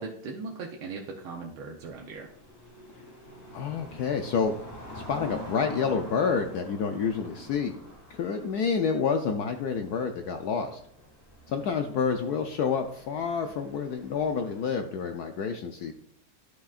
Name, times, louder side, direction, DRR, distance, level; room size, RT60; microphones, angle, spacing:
voice 1, 0.0-2.3, right 4 dB, 85° right, 0 dB, 1.8 m, -38 dB
sound 1, 1.8-14.7, left 1 dB, 20° left, 2.2 m, -47 dB
voice 2, 3.5-4.5 4.9-7.7 8.1-10.8 11.5-15.9, left 6 dB, 80° left, 5 dB, 0.9 m, -28 dB
11.5 x 5.9 x 2.4 m, 0.67 s
omnidirectional pair, 2.2 m